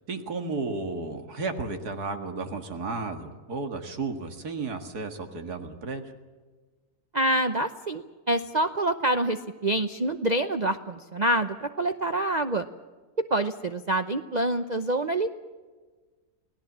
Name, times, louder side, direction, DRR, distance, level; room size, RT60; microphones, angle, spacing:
voice 1, 0.1-6.1, right 3 dB, 85° right, 5 dB, 2.4 m, -33 dB
voice 2, 7.1-12.6 13.3-15.3, right 1 dB, 35° right, 8 dB, 0.8 m, -26 dB
29.5 x 18.5 x 7.4 m, 1.4 s
omnidirectional pair, 1.6 m